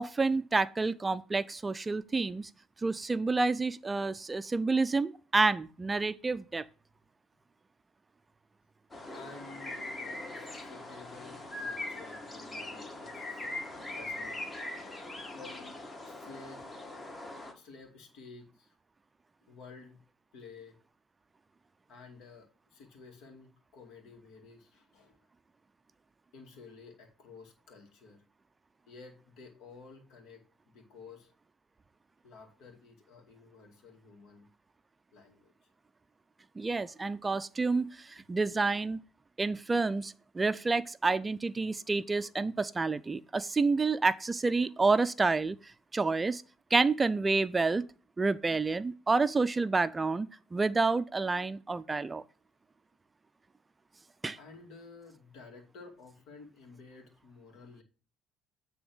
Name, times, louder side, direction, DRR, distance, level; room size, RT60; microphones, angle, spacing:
voice 1, 0.0-2.5 2.8-6.7 36.6-39.0 39.4-46.4 46.7-47.8 48.2-52.2 54.2-54.4, right 3 dB, 20° right, 0.4 m, -29 dB
sound 1, 8.9-17.5, left 2 dB, 20° left, 1.6 m, -41 dB
voice 2, 9.1-13.4 13.9-14.9 15.3-16.6 17.5-18.8 19.4-20.0 20.3-20.8 21.9-25.2 26.3-28.2 28.9-31.3 32.2-34.5 35.1-35.7 54.3-57.8, left 4 dB, 75° left, 2.2 m, -52 dB
9.0 x 3.5 x 6.1 m
cardioid pair, 110°, 0 cm